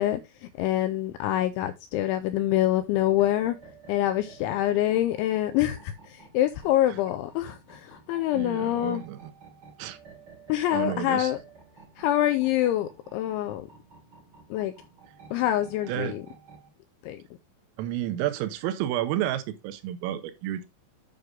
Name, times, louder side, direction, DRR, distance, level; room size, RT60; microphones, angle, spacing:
voice 1, 0.0-3.6 3.9-9.0 10.5-11.4 12.0-13.7 14.5-14.7 15.3-16.2 17.0-17.2, left 13 dB, 80° left, 2.8 m, -26 dB
sound 1, 3.0-16.7, right 5 dB, 25° right, 4.6 m, -52 dB
voice 2, 8.3-9.3 9.8-10.0 10.7-11.3 15.9-16.1 17.8-20.7, right 12 dB, 85° right, 3.5 m, -31 dB
9.4 x 6.4 x 3.7 m
omnidirectional pair, 5.8 m